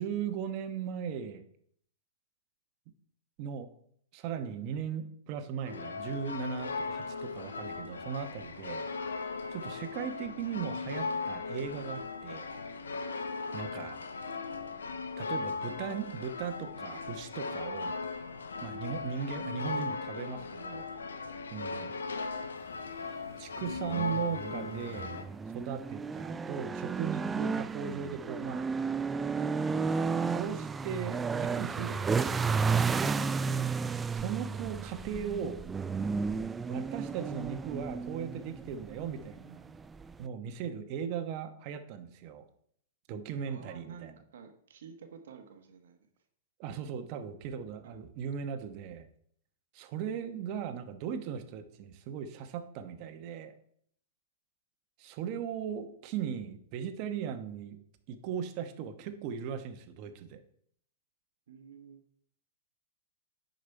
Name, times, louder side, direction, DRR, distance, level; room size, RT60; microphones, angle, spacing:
voice 1, 0.0-1.4 3.4-3.7 4.1-9.2 9.5-12.5 13.5-14.0 15.2-17.9 18.6-20.9 21.5-21.9 23.4-25.2 25.5-28.7 29.6-32.5 34.1-35.6 36.6-39.7 40.2-42.4 43.1-44.2 46.6-49.1 49.7-53.5 55.0-57.8 58.1-60.4, right 8 dB, 45° right, 8 dB, 1.1 m, -38 dB
sound 1, 5.7-25.3, left 4 dB, 85° left, 0.8 m, -38 dB
sound 2, 23.6-40.3, right 5 dB, 15° right, 0.3 m, -33 dB
voice 2, 43.4-46.1 47.8-48.0 61.5-62.0, right 6 dB, 75° right, 7 dB, 1.2 m, -51 dB
9.5 x 5.3 x 4.5 m, 0.66 s
hypercardioid pair, 115°, 0 cm